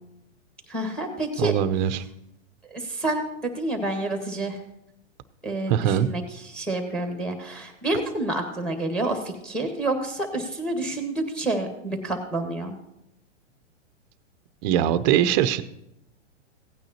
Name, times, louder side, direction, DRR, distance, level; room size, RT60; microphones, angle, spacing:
voice 1, 0.7-1.5 2.7-4.6 5.4-6.2 6.5-12.7, right 2 dB, 5° left, 5 dB, 1.6 m, -28 dB
voice 2, 1.4-2.0 5.7-6.1 14.6-15.6, right 10 dB, 40° right, 13 dB, 0.6 m, -21 dB
16.0 x 9.0 x 2.9 m, 0.83 s
hypercardioid pair, 125°, 36 cm